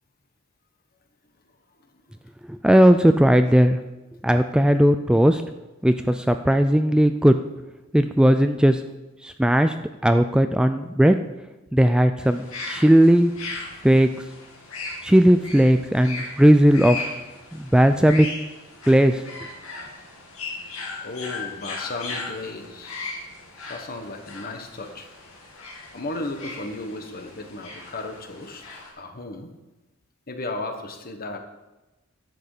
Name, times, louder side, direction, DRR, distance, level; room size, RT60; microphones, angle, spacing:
voice 1, 2.5-3.8 4.2-5.4 5.8-7.4 7.9-8.8 9.2-9.7 10.0-11.2 11.7-13.3 13.8-14.1 15.0-17.0 17.5-18.3 18.9-19.2, equal, 5° right, 8 dB, 0.3 m, -17 dB
sound 1, 12.2-28.9, left 3 dB, 80° left, 2.5 m, -37 dB
voice 2, 21.0-22.9 23.7-25.1 25.9-29.5 30.3-31.4, left 2 dB, 45° left, 5 dB, 1.4 m, -34 dB
11.0 x 8.1 x 5.0 m, 1.1 s
head